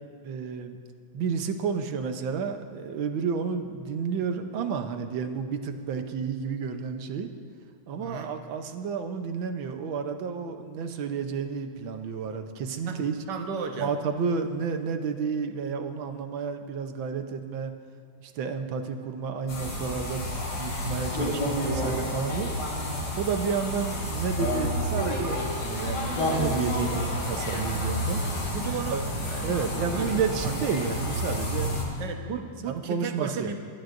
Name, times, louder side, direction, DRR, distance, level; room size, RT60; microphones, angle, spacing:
voice 1, 0.2-0.8 1.1-7.3 7.9-13.2 13.8-17.7 18.2-22.5 23.2-28.2 28.9-29.0 29.4-31.8 32.7-33.6, right 6 dB, 80° right, 6 dB, 1.6 m, -31 dB
voice 2, 8.0-8.3 12.8-13.0 13.3-13.9 28.5-29.0 29.3-29.5 29.9-30.2 30.4-30.5 32.0-33.6, right 5 dB, 65° right, 4 dB, 1.7 m, -34 dB
sound 1, 19.5-31.8, equal, 70° left, 3.3 m, -30 dB
28.0 x 12.5 x 2.6 m, 2.3 s
omnidirectional pair, 2.1 m